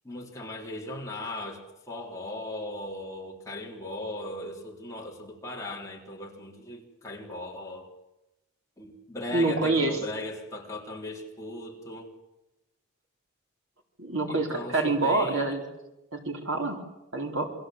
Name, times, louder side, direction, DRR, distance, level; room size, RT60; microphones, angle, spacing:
voice 1, 0.0-7.9 8.8-12.1 14.3-15.6, left 1 dB, 15° left, -2 dB, 3.7 m, -38 dB
voice 2, 9.3-10.0 14.0-15.6 16.1-16.8 17.1-17.5, right 2 dB, 70° right, 2 dB, 3.9 m, -26 dB
28.5 x 22.0 x 8.0 m, 0.98 s
head